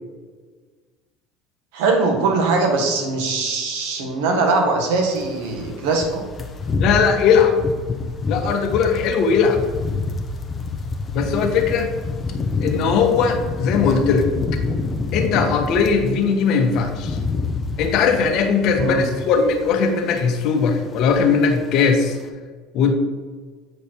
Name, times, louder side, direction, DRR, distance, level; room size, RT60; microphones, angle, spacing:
voice 1, 1.7-6.2 18.8-19.0, right 3 dB, 90° right, 3 dB, 1.6 m, -21 dB
sound 1, 5.2-16.1 16.4-19.9 20.1-20.4 20.7-21.5 21.8-22.0, left 3 dB, 25° left, 0.9 m, -27 dB
voice 2, 6.8-7.6 8.3-9.6 11.1-11.9 12.6-14.3 15.1-17.2 17.8-22.2 22.7-23.0, left 5 dB, 60° left, 4 dB, 1.3 m, -19 dB
8.5 x 5.1 x 4.5 m, 1.5 s
cardioid pair, 125°, 0 cm